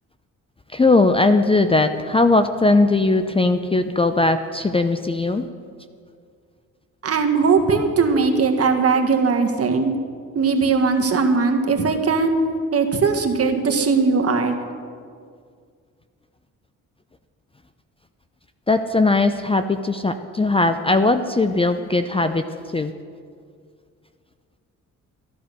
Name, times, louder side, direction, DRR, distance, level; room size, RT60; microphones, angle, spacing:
voice 1, 0.7-5.5 18.7-22.4 22.7-22.9, left 2 dB, 15° left, 9 dB, 0.6 m, -19 dB
voice 2, 7.0-9.9 10.3-12.4 12.7-14.5, right 4 dB, 45° right, 5 dB, 1.6 m, -19 dB
13.5 x 11.0 x 6.7 m, 2.1 s
cardioid pair, 95°, 33 cm